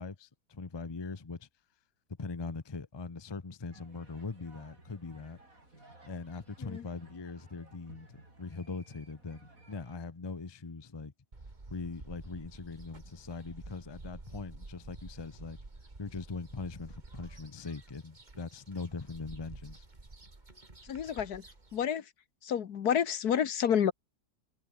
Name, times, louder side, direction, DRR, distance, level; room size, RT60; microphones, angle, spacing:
voice 1, 0.0-1.5 2.2-5.4 6.0-11.1 11.7-15.6 16.0-19.8, left 4 dB, 20° left, 0.7 m, -41 dB
sound 1, 3.7-10.0, right 2 dB, 55° right, 6.9 m, -58 dB
sound 2, 11.3-21.9, right 2 dB, 25° right, 2.6 m, -50 dB
voice 2, 20.8-21.4 21.7-22.1 22.4-23.9, left 8 dB, 75° left, 1.7 m, -29 dB
omnidirectional pair, 1.7 m